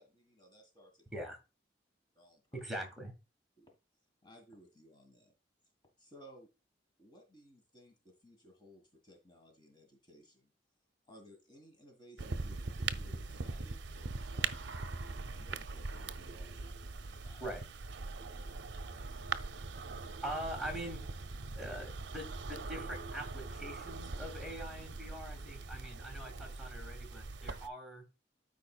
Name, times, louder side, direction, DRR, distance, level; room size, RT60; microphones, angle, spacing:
voice 1, 0.0-1.1 2.1-2.6 3.6-3.7 4.2-5.3 6.0-6.5 7.0-10.5 11.1-17.4 18.3-19.3, equal, 25° left, 2 dB, 1.8 m, -60 dB
voice 2, 2.5-3.1 17.4-17.6 20.2-21.0 21.5-28.0, right 1 dB, ahead, 0 dB, 2.3 m, -43 dB
sound 1, 12.2-27.7, right 3 dB, 70° right, 0.6 m, -41 dB
13.0 x 4.8 x 2.4 m, 0.29 s
head